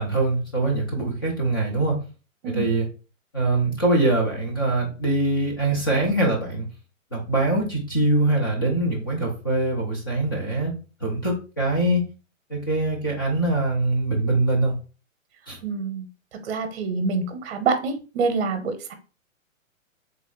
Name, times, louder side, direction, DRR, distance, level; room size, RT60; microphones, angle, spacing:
voice 1, 0.0-2.0 2.5-2.9 3.3-6.7 7.1-12.0 12.5-14.7 15.5-15.6, right 2 dB, 20° left, -1 dB, 0.3 m, -23 dB
voice 2, 15.6-18.9, right 4 dB, 50° right, 7 dB, 0.8 m, -26 dB
3.4 x 2.1 x 3.7 m, 0.35 s
hypercardioid pair, 145°, 40 cm